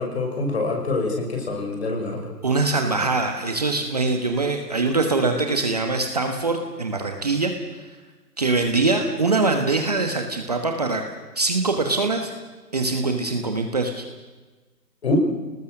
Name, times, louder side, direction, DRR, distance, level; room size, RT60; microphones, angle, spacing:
voice 1, 0.0-2.3 15.0-15.2, left 3 dB, 40° left, 2 dB, 6.0 m, -25 dB
voice 2, 2.4-7.5 8.4-11.0 11.4-12.3 12.7-14.0, right 3 dB, 25° right, 5 dB, 1.3 m, -23 dB
27.5 x 19.5 x 6.5 m, 1.3 s
figure-of-eight pair, 160°, 50 cm